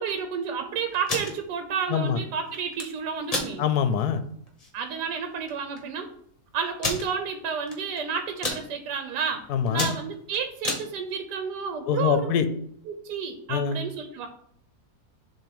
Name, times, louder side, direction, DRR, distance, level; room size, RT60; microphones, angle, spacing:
voice 1, 0.0-3.7 4.7-6.1 6.5-9.4 9.7-12.3 12.9-14.3, right 6 dB, 90° right, 6 dB, 1.3 m, -31 dB
sound 1, 0.9-1.3 2.5-2.9 3.3-3.5 4.0-4.1 4.5-4.7 5.5-5.6 5.8-5.9 6.8-7.1 7.7-8.0 8.3-8.6 9.2-9.4 9.7-10.8, left 2 dB, 25° left, 1.1 m, -29 dB
voice 2, 3.6-4.2 9.5-9.9 11.9-12.5 13.5-13.8, left 7 dB, 75° left, 10 dB, 1.1 m, -24 dB
7.3 x 2.9 x 5.3 m, 0.66 s
omnidirectional pair, 1.7 m